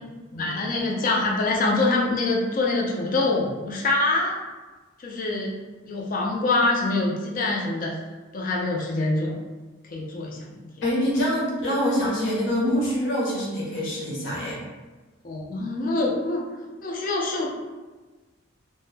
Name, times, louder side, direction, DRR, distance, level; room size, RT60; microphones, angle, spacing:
voice 1, 0.4-4.4 5.0-5.5 5.8-8.0 8.3-9.3 9.9-10.7 15.2-16.4 16.8-17.5, left 2 dB, 40° left, -2 dB, 0.4 m, -25 dB
voice 2, 10.8-14.6, equal, 65° left, -5 dB, 0.7 m, -25 dB
2.1 x 2.1 x 3.1 m, 1.3 s
head